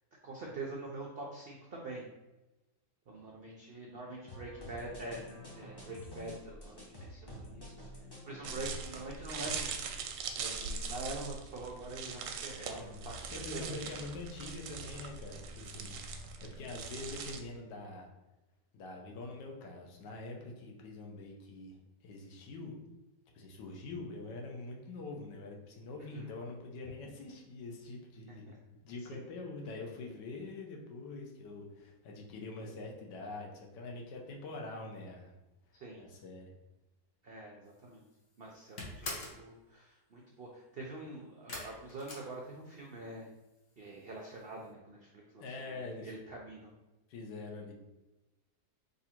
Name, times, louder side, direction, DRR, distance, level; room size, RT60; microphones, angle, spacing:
voice 1, 0.2-2.0 3.1-9.8 10.3-13.9 26.1-26.3 28.5-28.6 29.1-29.3 35.8-36.0 37.2-38.0 38.4-43.3 43.8-46.7, right 2 dB, 70° right, -2 dB, 0.5 m, -45 dB
sound 1, 4.3-9.6, equal, 25° left, 0.6 m, -49 dB
sound 2, 8.4-17.4, right 5 dB, 90° right, 1.2 m, -41 dB
voice 2, 12.7-16.0 16.4-18.1 18.7-21.8 22.0-22.8 23.3-28.5 28.8-35.3 36.0-36.5 45.4-46.1 47.1-47.7, left 3 dB, 80° left, 0 dB, 1.4 m, -44 dB
sound 3, 37.8-38.1 38.4-39.5 41.5-43.0 43.3-43.9 44.2-44.3 44.6-44.7, left 2 dB, 50° left, 1.2 m, -43 dB
3.9 x 2.7 x 4.3 m, 1.0 s
omnidirectional pair, 1.8 m